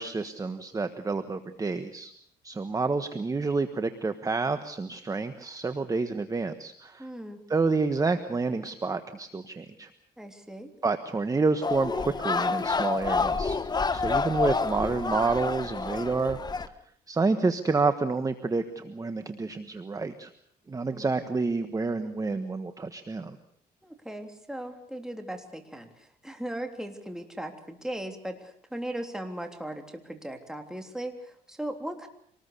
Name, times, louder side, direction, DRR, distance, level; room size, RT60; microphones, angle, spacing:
voice 1, 0.0-2.1 2.4-7.1 7.5-9.9 10.8-13.6 13.9-16.4 17.1-20.3 20.7-23.4, right 3 dB, 20° right, 9 dB, 1.3 m, -29 dB
voice 2, 7.0-7.4 10.2-10.7 20.9-21.1 23.8-32.1, right 1 dB, 5° right, 4 dB, 3.4 m, -38 dB
sound 1, 11.6-16.7, left 4 dB, 25° left, 1.3 m, -28 dB
26.0 x 19.5 x 6.8 m, 0.66 s
cardioid pair, 105°, 17 cm